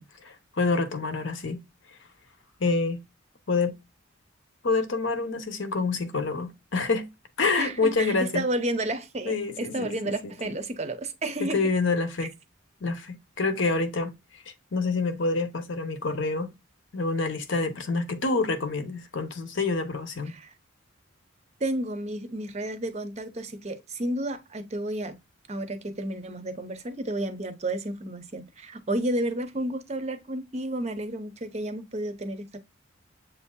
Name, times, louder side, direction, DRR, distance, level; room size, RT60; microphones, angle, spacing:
voice 1, 0.0-1.6 2.6-3.0 3.5-3.7 4.6-7.1 7.4-8.5 9.2-10.3 11.4-12.3 12.8-14.1 14.7-16.5 16.9-20.4, left 3 dB, 60° left, 0.7 m, -27 dB
voice 2, 7.6-11.6 20.3-20.5 21.6-25.2 25.5-32.6, right 1 dB, 30° right, 0.6 m, -31 dB
7.2 x 2.7 x 2.2 m
head